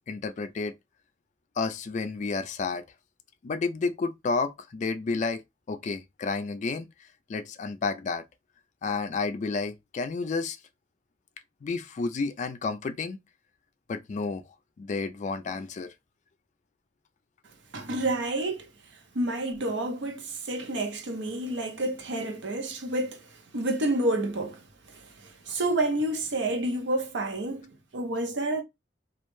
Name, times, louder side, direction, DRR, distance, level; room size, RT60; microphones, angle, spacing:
voice 1, 0.1-0.7 1.6-2.8 3.4-5.4 5.7-6.9 7.3-8.2 8.8-10.6 11.6-13.2 13.9-14.4 14.8-15.9, left 4 dB, 40° left, 0.3 m, -31 dB
voice 2, 17.7-18.7 19.1-23.3 23.5-28.6, right 1 dB, 85° right, 0.7 m, -29 dB
2.3 x 2.1 x 3.0 m
head